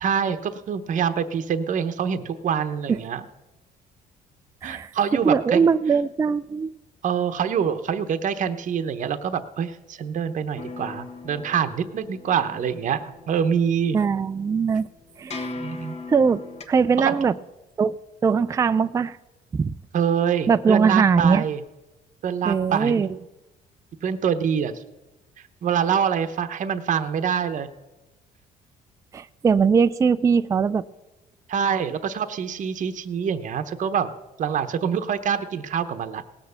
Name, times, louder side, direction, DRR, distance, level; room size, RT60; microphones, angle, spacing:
voice 1, 0.0-3.2 4.6-5.7 7.0-14.0 15.6-16.0 17.0-17.2 19.9-21.6 22.2-23.0 24.0-24.7 25.6-27.7 31.5-34.1 34.4-36.2, right 7 dB, 50° right, 9 dB, 0.9 m, -25 dB
voice 2, 5.2-6.7 13.9-14.9 15.2-15.4 16.1-16.4 16.7-17.3 17.8-18.0 18.2-19.2 19.5-19.7 20.5-21.4 22.5-23.1 29.1-30.8, right 5 dB, 20° right, 12 dB, 0.3 m, -20 dB
sound 1, 10.6-16.6, left 3 dB, 40° left, 1.4 m, -39 dB
18.0 x 6.6 x 6.9 m, 1.0 s
cardioid pair, 110°, 17 cm